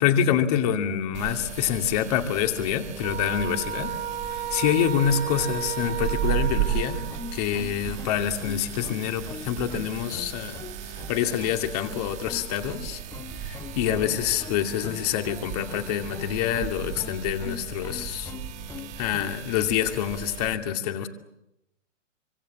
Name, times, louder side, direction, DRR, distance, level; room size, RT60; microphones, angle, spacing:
voice 1, 0.0-3.9 4.3-10.6 10.8-13.0 13.4-18.3 19.0-21.1, left 9 dB, 30° left, 6 dB, 2.5 m, -26 dB
sound 1, 1.1-20.5, right 9 dB, 20° right, 1.8 m, -35 dB
sound 2, 3.0-7.4, right 9 dB, 85° right, 3.0 m, -33 dB
sound 3, 5.1-19.4, left 6 dB, 10° left, 1.0 m, -42 dB
27.0 x 25.0 x 7.3 m, 0.86 s
figure-of-eight pair, 125°, 38 cm